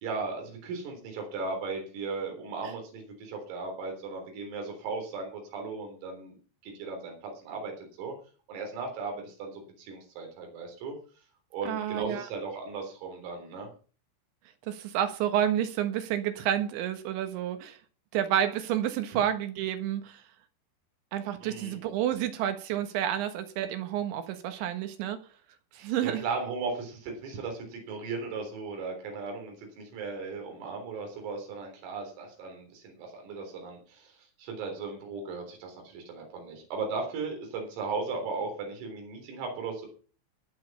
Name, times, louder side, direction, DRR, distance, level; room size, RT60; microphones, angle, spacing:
voice 1, 0.0-6.4 6.6-8.2 8.5-11.0 11.5-13.7 21.4-21.8 25.8-39.9, right 4 dB, 85° right, 2 dB, 6.4 m, -37 dB
voice 2, 11.7-12.3 14.7-17.8 18.1-20.2 21.1-25.2 25.7-26.2, right 10 dB, 70° right, 9 dB, 3.6 m, -30 dB
21.0 x 7.7 x 5.5 m, 0.40 s
omnidirectional pair, 5.9 m